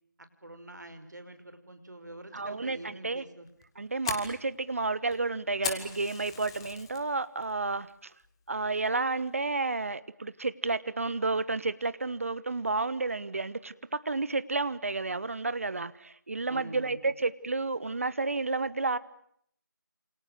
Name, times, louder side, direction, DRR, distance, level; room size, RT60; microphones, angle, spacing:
voice 1, 0.4-3.5 16.5-17.0, right 1 dB, 60° right, 9 dB, 5.3 m, -46 dB
voice 2, 2.3-3.2 3.8-8.1 8.5-19.0, right 3 dB, 45° right, 16 dB, 1.3 m, -31 dB
Fire, 3.5-7.0 7.4-7.8 8.2-8.3 8.9-9.2, left 6 dB, 15° left, 2.0 m, -38 dB
28.5 x 28.0 x 6.6 m, 0.67 s
figure-of-eight pair, 160°, 11 cm